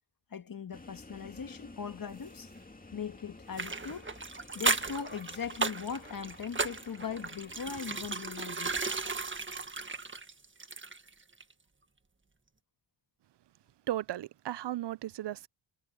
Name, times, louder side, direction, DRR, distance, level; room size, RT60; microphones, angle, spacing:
voice 1, 0.3-2.5 2.9-4.1 4.5-8.8, left 6 dB, 45° left, 1.7 m, -40 dB
sound 1, 0.7-8.2, left 2 dB, 20° left, 2.3 m, -52 dB
sound 2, 3.5-11.1 11.4-11.5, right 4 dB, 25° right, 1.7 m, -35 dB
voice 2, 13.9-15.5, right 13 dB, 60° right, 0.7 m, -35 dB
cardioid pair, 75°, 47 cm